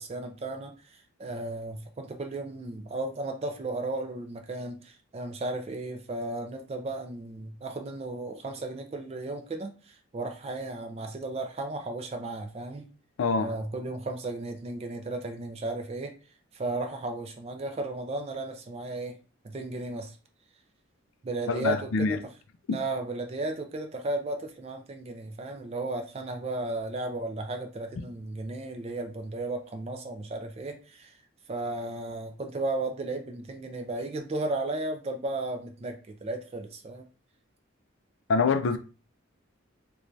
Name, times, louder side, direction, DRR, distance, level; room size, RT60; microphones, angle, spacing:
voice 1, 0.0-12.9 13.4-16.1 16.5-19.2 19.4-20.2 21.2-22.3 22.7-31.2 31.5-37.0, right 2 dB, 30° right, 0.3 m, -34 dB
voice 2, 13.2-13.6 21.5-22.2 22.7-22.8 38.3-38.8, left 4 dB, 70° left, 0.4 m, -25 dB
2.6 x 2.2 x 3.1 m
head